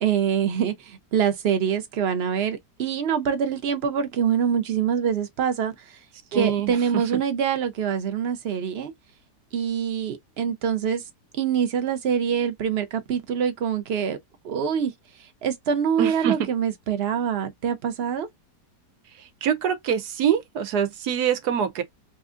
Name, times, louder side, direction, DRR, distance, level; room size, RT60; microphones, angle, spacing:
voice 1, 0.0-6.0 6.3-8.9 9.5-11.0 11.3-14.2 14.4-14.9 15.2-18.3, right 8 dB, 50° right, 0.8 m, -25 dB
voice 2, 6.3-7.0 16.0-16.3 19.4-21.8, right 9 dB, 70° right, 1.2 m, -24 dB
4.2 x 2.6 x 2.5 m
omnidirectional pair, 1.8 m